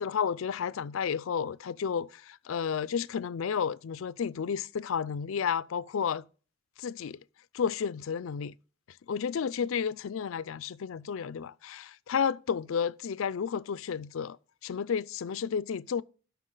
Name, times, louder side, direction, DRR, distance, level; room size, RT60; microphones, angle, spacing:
voice 1, 0.0-6.2 6.8-7.2 7.5-8.5 9.1-14.4 14.6-16.0, left 7 dB, 75° left, 0.4 m, -32 dB
12.0 x 5.8 x 3.8 m
head